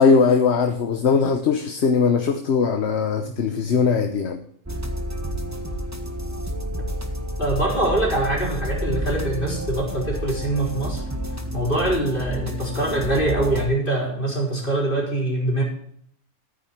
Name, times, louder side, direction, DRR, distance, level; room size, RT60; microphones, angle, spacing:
voice 1, 0.0-4.4, left 5 dB, 55° left, 1.1 m, -20 dB
sound 1, 4.7-13.7, equal, 10° right, 1.1 m, -29 dB
voice 2, 7.4-11.0 11.5-15.6, right 1 dB, 35° left, 4.3 m, -24 dB
13.5 x 9.3 x 4.5 m
omnidirectional pair, 1.5 m